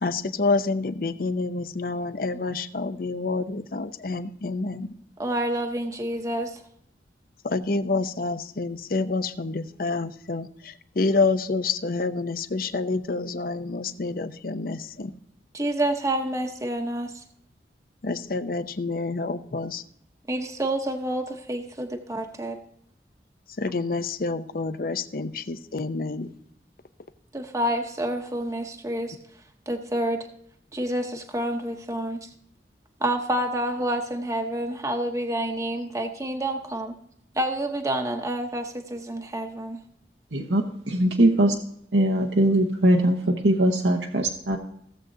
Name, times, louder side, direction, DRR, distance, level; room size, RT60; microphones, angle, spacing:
voice 1, 0.0-4.9 7.4-15.2 18.0-19.8 23.6-26.3, left 3 dB, 55° left, 11 dB, 0.7 m, -28 dB
voice 2, 5.2-6.6 15.5-17.1 20.3-22.6 27.3-29.2 29.7-30.3 30.7-32.3 33.0-36.9 37.4-39.8, right 1 dB, 20° right, 4 dB, 0.9 m, -28 dB
voice 3, 40.3-41.5 41.9-44.6, right 1 dB, 90° right, 1 dB, 1.1 m, -21 dB
16.5 x 7.6 x 2.7 m, 0.70 s
head